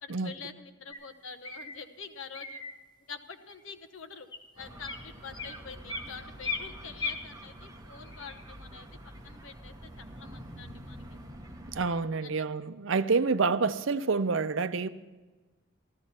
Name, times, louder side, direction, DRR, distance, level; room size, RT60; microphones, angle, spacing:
voice 1, 0.0-2.6 3.1-4.3 4.5-8.9 9.2-11.0 12.2-12.3, left 5 dB, 80° left, 1.0 m, -46 dB
sound 1, 0.9-1.0 1.4-1.8 2.3-2.7 3.5-3.6 4.2-4.4 4.8-5.1 5.3-6.1 6.4-7.2 8.0-8.7, left 4 dB, 20° left, 1.1 m, -37 dB
sound 2, 4.6-11.9, right 1 dB, 20° right, 1.2 m, -47 dB
voice 2, 11.7-14.9, right 4 dB, 70° right, 0.6 m, -28 dB
13.5 x 13.0 x 4.3 m
head